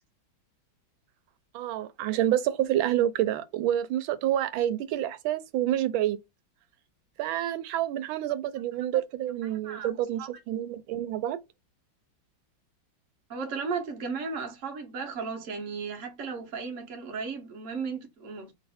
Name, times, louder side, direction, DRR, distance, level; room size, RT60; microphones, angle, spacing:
voice 1, 1.5-6.2 7.2-11.4, right 12 dB, 90° right, 1.4 m, -28 dB
voice 2, 9.4-9.9 10.2-10.3 13.3-18.5, right 5 dB, 50° right, 1.2 m, -35 dB
3.1 x 2.6 x 4.2 m
omnidirectional pair, 2.1 m